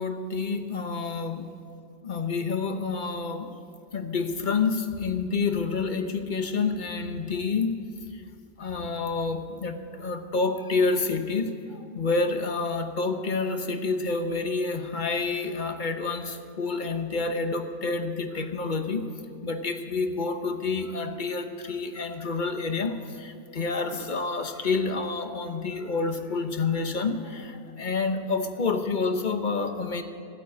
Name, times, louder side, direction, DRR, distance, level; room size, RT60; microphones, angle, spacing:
voice 1, 0.0-1.5 2.0-3.5 3.9-7.8 8.1-8.2 8.6-19.1 19.4-30.0, left 4 dB, 50° left, 7 dB, 1.1 m, -28 dB
16.0 x 9.0 x 8.4 m, 2.5 s
omnidirectional pair, 1.1 m